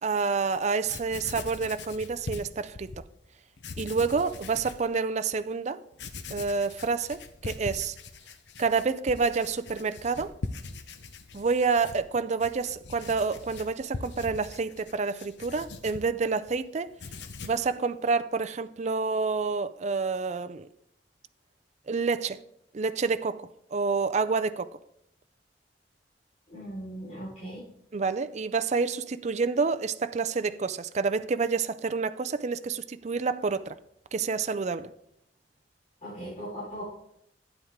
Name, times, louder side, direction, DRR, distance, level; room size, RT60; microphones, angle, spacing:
voice 1, 0.0-2.9 3.8-5.8 6.3-8.0 8.6-10.3 11.3-16.9 17.4-20.7 21.9-22.4 22.7-24.7 27.9-33.8 34.1-34.9, right 4 dB, 40° right, 0.5 m, -28 dB
Writing, 0.6-3.0 3.6-4.9 5.3-5.4 5.9-16.6 16.9-17.7, left 3 dB, 75° left, 0.8 m, -42 dB
voice 2, 26.5-27.6 36.0-36.8, equal, 40° left, 4.3 m, -38 dB
12.0 x 9.4 x 3.6 m
head